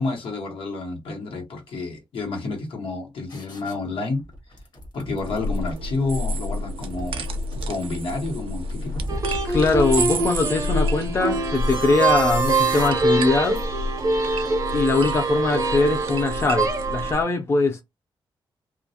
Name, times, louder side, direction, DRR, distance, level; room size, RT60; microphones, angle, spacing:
voice 1, 0.0-4.2 4.9-7.3 7.7-9.0, left 3 dB, 80° left, 1.0 m, -29 dB
sound 1, 3.3-3.7 4.2-5.9 6.6-8.1 8.7-10.4 11.4-12.9 13.5-13.7, equal, 50° left, 0.9 m, -36 dB
sound 2, 5.2-17.2, equal, 90° right, 0.4 m, -30 dB
sound 3, 9.1-17.1, right 3 dB, 40° right, 0.6 m, -24 dB
voice 2, 9.4-13.6 14.7-17.8, left 3 dB, 30° left, 0.4 m, -22 dB
2.3 x 2.0 x 2.7 m
wide cardioid pair, 125°, 9 cm